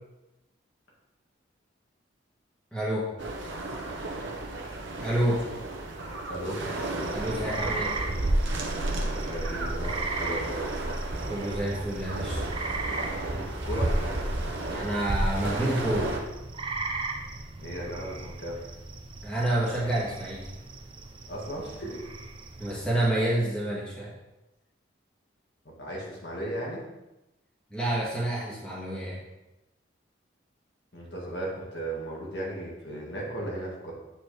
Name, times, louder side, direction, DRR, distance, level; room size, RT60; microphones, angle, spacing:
voice 1, 2.7-3.1 5.0-5.4 7.1-7.9 11.2-12.4 14.7-16.1 19.2-20.5 22.6-24.1 27.7-29.2, right 1 dB, 5° left, -7 dB, 1.6 m, -28 dB
sound 1, 3.2-16.2, right 2 dB, 70° right, 0.9 m, -35 dB
voice 2, 6.3-6.6 9.0-10.7 13.3-13.9 17.6-18.6 21.3-22.1 25.8-26.8 30.9-33.9, right 1 dB, 60° left, -3 dB, 1.8 m, -35 dB
sound 2, 6.8-23.0, right 1 dB, 25° right, 0.4 m, -33 dB
8.0 x 4.4 x 3.3 m, 0.98 s
head